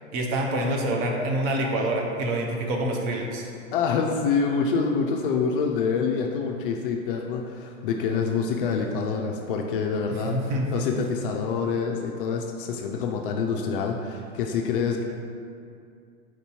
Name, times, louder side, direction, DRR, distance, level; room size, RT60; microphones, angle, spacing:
voice 1, 0.1-3.5 10.2-10.8, right 1 dB, 35° right, 0 dB, 0.6 m, -26 dB
voice 2, 3.7-15.0, left 5 dB, 45° left, 2 dB, 0.4 m, -26 dB
4.4 x 2.7 x 4.4 m, 2.4 s
hypercardioid pair, 105°, 41 cm